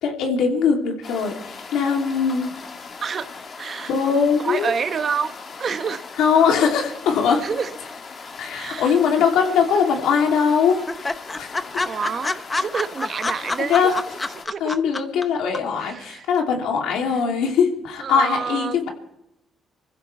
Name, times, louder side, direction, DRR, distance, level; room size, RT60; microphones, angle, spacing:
voice 1, 0.0-2.5 3.9-4.7 6.2-7.4 8.4-10.8 11.4-11.8 13.7-13.9 14.6-18.9, left 6 dB, 90° left, 2.9 m, -21 dB
sound 1, 1.0-14.5, left 4 dB, 50° left, 2.5 m, -39 dB
voice 2, 3.0-3.3 3.6-3.9 4.4-6.0 7.4-7.8 8.5-9.0 11.8-13.9 14.5-14.8 15.8-16.3 17.1-17.2 18.0-18.9, right 6 dB, 50° right, 1.0 m, -28 dB
sound 2, 9.2-9.8 10.1-10.2 10.5-10.6 10.9-15.2 15.5-15.6, left 3 dB, 20° left, 0.9 m, -27 dB
26.0 x 15.5 x 3.4 m
cardioid pair, 90°, 0 cm